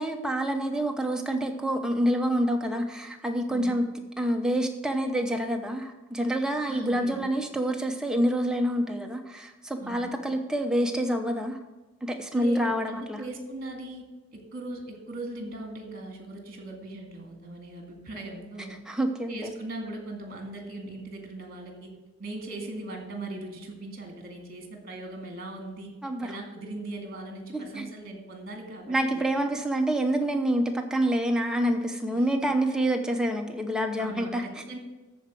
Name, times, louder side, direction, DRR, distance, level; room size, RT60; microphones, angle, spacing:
voice 1, 0.0-3.8 4.2-11.6 12.0-13.2 18.9-19.5 26.0-26.3 27.5-27.9 28.9-34.4, right 1 dB, 5° right, 3 dB, 0.8 m, -27 dB
voice 2, 3.5-3.8 6.7-7.2 9.8-10.1 12.3-14.0 14.3-18.8 19.3-21.9 22.2-25.9 26.2-29.3 32.1-32.5 34.0-34.8, right 2 dB, 45° right, 3 dB, 2.0 m, -39 dB
13.5 x 4.6 x 6.1 m, 1.2 s
head